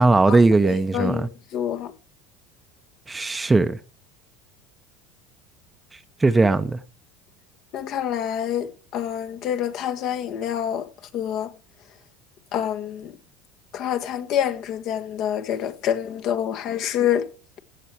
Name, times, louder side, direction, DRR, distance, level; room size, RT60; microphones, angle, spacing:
voice 1, 0.0-1.3 3.1-3.8 6.2-6.8, right 3 dB, 15° right, 0.8 m, -18 dB
voice 2, 0.6-1.9 7.7-10.8 11.1-11.5 12.5-13.1 13.7-17.3, left 10 dB, 55° left, 1.5 m, -27 dB
15.5 x 7.7 x 4.6 m
supercardioid pair, 115°, 0 cm